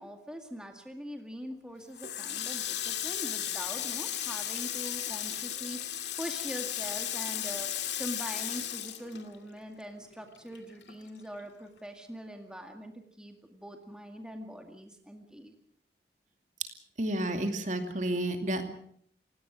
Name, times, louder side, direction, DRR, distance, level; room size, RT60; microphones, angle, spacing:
voice 1, 0.0-7.7 8.0-15.5, equal, 5° right, 4 dB, 2.0 m, -43 dB
Water tap faucet, 2.0-9.8 10.1-11.4, left 11 dB, 85° left, 2.4 m, -35 dB
voice 2, 17.0-18.7, right 1 dB, 45° right, 6 dB, 2.5 m, -31 dB
29.0 x 17.5 x 6.3 m, 0.62 s
head